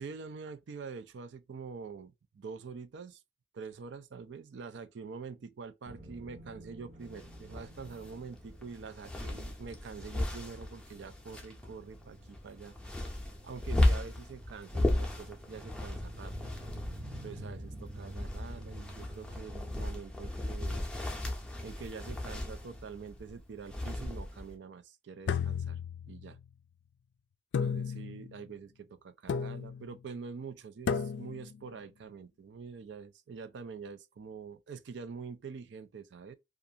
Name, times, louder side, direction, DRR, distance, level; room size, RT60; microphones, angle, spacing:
voice 1, 0.0-3.2 3.5-12.8 13.4-16.5 17.2-20.9 21.6-25.8 26.1-26.4 27.6-36.3, right 5 dB, 75° right, 0.4 m, -45 dB
sound 1, 5.8-23.3, right 1 dB, 40° right, 0.8 m, -50 dB
sound 2, 7.0-24.5, left 1 dB, 5° left, 0.5 m, -36 dB
empty bottle one-shots, 25.3-26.5 27.5-28.3 29.3-29.9 30.9-31.5, left 6 dB, 75° left, 0.3 m, -33 dB
2.5 x 2.4 x 2.7 m
head